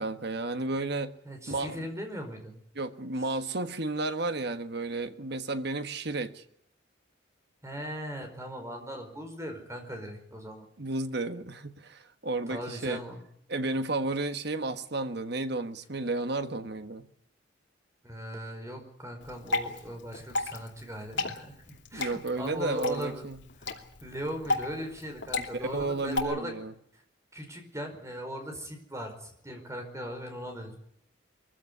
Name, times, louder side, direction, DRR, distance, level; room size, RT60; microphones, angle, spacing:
voice 1, 0.0-1.1 1.5-1.8 2.7-6.4 10.8-13.0 13.5-17.1 21.9-23.4 25.4-26.7, right 2 dB, 60° right, 1.4 m, -32 dB
voice 2, 1.2-2.6 7.6-10.7 12.5-13.2 18.0-23.2 23.6-23.7 24.0-26.5 27.3-30.8, equal, 15° right, 4.8 m, -39 dB
Water / Drip, 19.2-26.2, left 2 dB, 65° left, 2.7 m, -34 dB
23.0 x 15.5 x 9.7 m
head